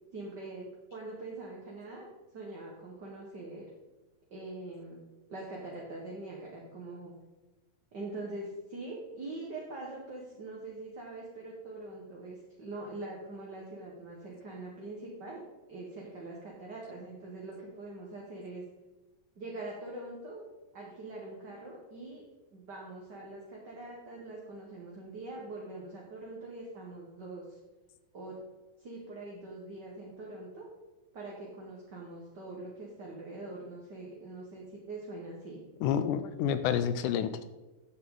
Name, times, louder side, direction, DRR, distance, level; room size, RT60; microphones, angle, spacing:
voice 1, 0.1-0.7 0.9-2.1 2.3-3.7 4.3-5.0 5.3-7.1 7.9-15.4 15.7-18.6 19.3-22.2 22.5-27.4 28.1-28.4 28.8-30.7 31.1-35.6, right 2 dB, 45° right, -3 dB, 1.6 m, -43 dB
voice 2, 35.8-37.4, left 8 dB, 80° left, 11 dB, 1.9 m, -29 dB
13.0 x 7.8 x 4.0 m, 1.1 s
omnidirectional pair, 3.9 m